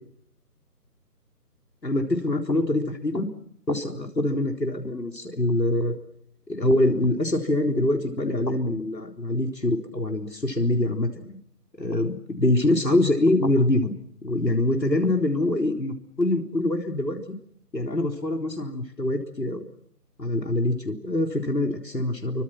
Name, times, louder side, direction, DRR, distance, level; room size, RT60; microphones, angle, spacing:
voice 1, 1.8-3.3 3.7-5.9 6.5-11.4 11.8-13.9 14.2-17.2 17.7-19.6 20.2-22.4, left 1 dB, 85° left, 3 dB, 4.1 m, -24 dB
28.0 x 24.0 x 6.2 m, 0.69 s
figure-of-eight pair, 155°, 49 cm